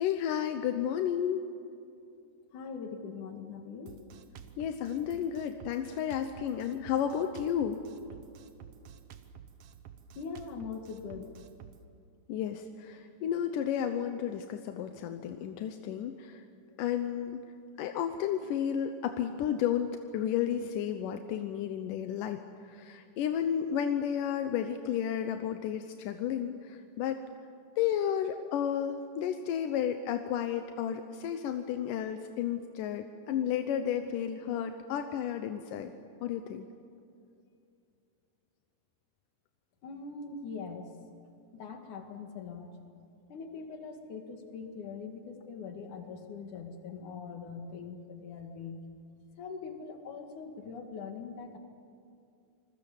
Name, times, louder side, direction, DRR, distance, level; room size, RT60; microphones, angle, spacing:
voice 1, 0.0-1.4 4.6-7.8 12.3-16.4 16.8-17.4 17.8-22.4 22.7-27.2 27.8-35.9 36.2-36.7, left 9 dB, 90° left, 7 dB, 2.5 m, -32 dB
voice 2, 2.5-4.0 10.2-11.3 39.8-40.9 41.5-42.7 43.3-48.8 49.4-51.6, left 5 dB, 70° left, 5 dB, 3.4 m, -42 dB
Drum kit, 3.9-11.8, right 8 dB, 60° right, 1.8 m, -51 dB
27.5 x 21.0 x 7.2 m, 2.5 s
omnidirectional pair, 3.7 m